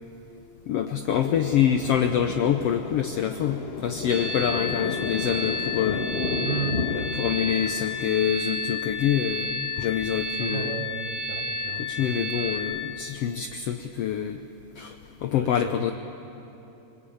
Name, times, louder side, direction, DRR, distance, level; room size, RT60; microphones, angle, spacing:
voice 1, 0.7-6.1 6.9-10.9 11.8-14.4 14.8-15.0 15.2-15.9, left 9 dB, 80° left, 8 dB, 1.4 m, -26 dB
Thunder, 1.1-8.2, left 4 dB, 50° left, 0.7 m, -33 dB
sound 1, 4.1-12.6, left 2 dB, 70° right, 3.3 m, -31 dB
voice 2, 6.4-6.9 10.4-12.3 15.3-15.9, right 9 dB, 85° right, 8 dB, 2.8 m, -35 dB
25.0 x 22.5 x 8.6 m, 3.0 s
omnidirectional pair, 3.7 m